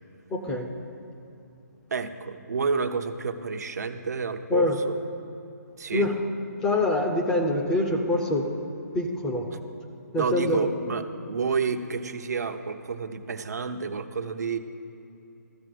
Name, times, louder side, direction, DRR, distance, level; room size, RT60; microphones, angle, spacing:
voice 1, 0.3-0.7 4.5-4.7 5.9-6.1 6.6-8.5 8.9-9.5 10.1-10.6, left 2 dB, 5° left, 2 dB, 0.5 m, -24 dB
voice 2, 1.9-4.9 5.8-6.1 10.2-14.6, right 5 dB, 65° right, 7 dB, 0.8 m, -29 dB
13.0 x 6.0 x 7.8 m, 2.7 s
hypercardioid pair, 170°, 9 cm